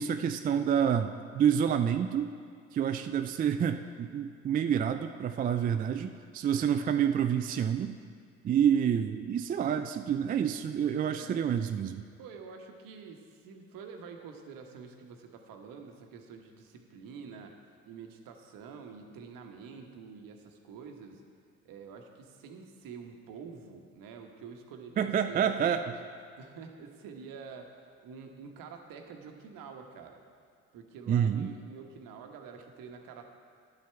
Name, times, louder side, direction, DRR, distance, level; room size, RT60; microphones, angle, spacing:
voice 1, 0.0-2.3 2.7-8.0 8.4-12.1 25.0-25.8 31.1-31.5, right 8 dB, 25° right, 8 dB, 0.4 m, -28 dB
voice 2, 11.1-11.5 12.2-17.6 17.9-21.2 21.6-26.0 26.4-30.2 30.7-33.2, right 5 dB, 55° right, 4 dB, 1.2 m, -47 dB
11.0 x 7.3 x 4.5 m, 2.1 s
figure-of-eight pair, 50°, 40 cm